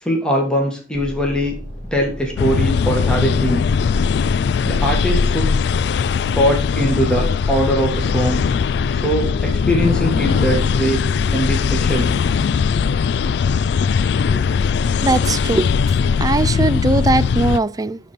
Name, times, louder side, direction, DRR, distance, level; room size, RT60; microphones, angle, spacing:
voice 1, 0.0-1.5 1.9-3.6 4.7-5.4 6.3-8.5 8.9-11.0 11.3-12.1, right 1 dB, 5° left, 1.8 m, -21 dB
sound 1, 0.9-17.4, equal, 45° left, 3.1 m, -34 dB
sound 2, 2.4-17.6, left 6 dB, 70° left, 0.3 m, -19 dB
voice 2, 15.0-15.7 16.2-18.0, right 3 dB, 20° right, 0.4 m, -19 dB
12.5 x 4.3 x 5.2 m
head